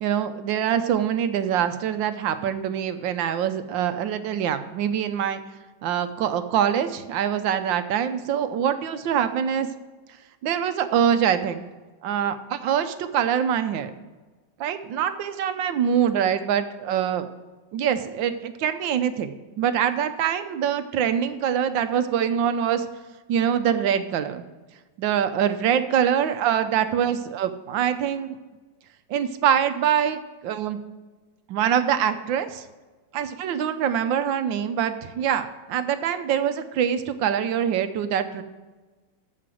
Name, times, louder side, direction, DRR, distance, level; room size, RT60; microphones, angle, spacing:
voice 1, 0.0-5.4 5.8-9.7 10.4-11.7 12.0-13.9 14.6-17.3 17.7-19.3 19.6-22.9 23.3-24.4 25.0-28.4 29.1-30.8 31.5-32.6 33.1-38.4, right 9 dB, 85° right, 10 dB, 1.5 m, -24 dB
13.5 x 5.1 x 6.3 m, 1.3 s
omnidirectional pair, 2.0 m